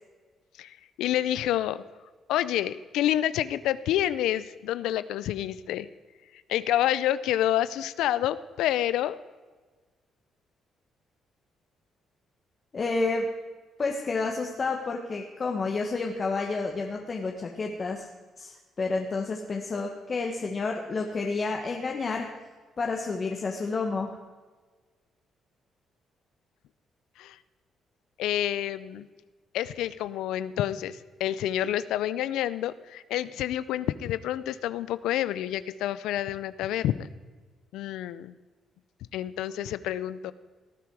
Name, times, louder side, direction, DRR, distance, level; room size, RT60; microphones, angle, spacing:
voice 1, 0.6-1.8 2.3-5.9 6.3-9.2 27.2-27.4 28.2-29.1 29.5-37.1 37.7-38.3 39.1-40.3, left 12 dB, 90° left, 15 dB, 0.5 m, -28 dB
voice 2, 12.7-13.3 13.8-18.1 18.4-22.3 22.8-24.2, left 3 dB, 40° left, 2 dB, 1.3 m, -30 dB
18.5 x 10.5 x 4.8 m, 1.4 s
cardioid pair, 90°, 0 cm